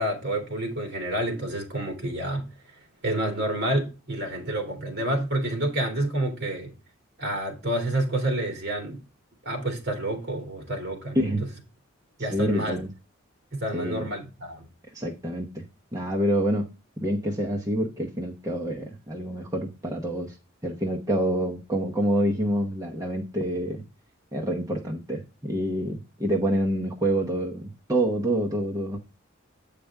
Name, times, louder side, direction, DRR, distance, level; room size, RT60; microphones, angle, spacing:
voice 1, 0.0-2.5 3.0-6.7 7.2-9.0 9.4-11.2 12.2-12.8 13.5-14.6, right 1 dB, 55° right, 2.5 m, -29 dB
voice 2, 12.2-12.9 13.7-14.1 14.9-15.6 15.9-16.7 17.0-20.4 20.6-23.8 24.3-29.0, right 1 dB, 15° right, 1.0 m, -27 dB
8.5 x 5.0 x 3.4 m
head